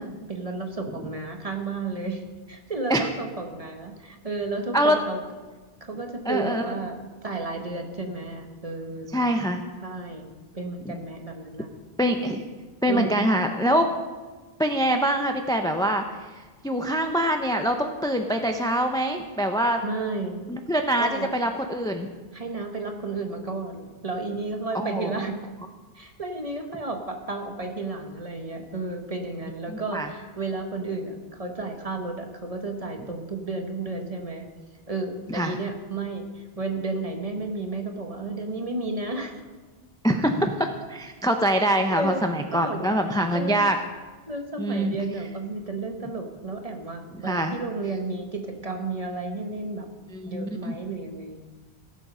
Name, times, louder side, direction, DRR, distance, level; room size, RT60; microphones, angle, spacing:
voice 1, 0.0-2.2 2.5-5.2 5.8-9.1 9.8-10.3 10.5-11.7 12.9-13.3 19.8-20.4 21.0-21.3 22.3-25.4 25.9-34.5 34.9-39.4 41.6-42.2 42.5-43.0 43.3-43.7 44.3-49.9 50.3-51.4, right 3 dB, 35° right, 3 dB, 1.5 m, -32 dB
voice 2, 6.3-6.6 9.1-9.6 10.8-10.9 12.0-12.4 12.8-13.9 14.6-16.3 16.6-19.8 20.5-22.1 24.7-25.1 29.7-30.1 35.3-35.5 40.0-43.8 44.6-45.0 47.2-47.6 50.1-50.8, equal, 5° left, 5 dB, 0.7 m, -24 dB
17.0 x 7.5 x 5.6 m, 1.3 s
omnidirectional pair, 1.1 m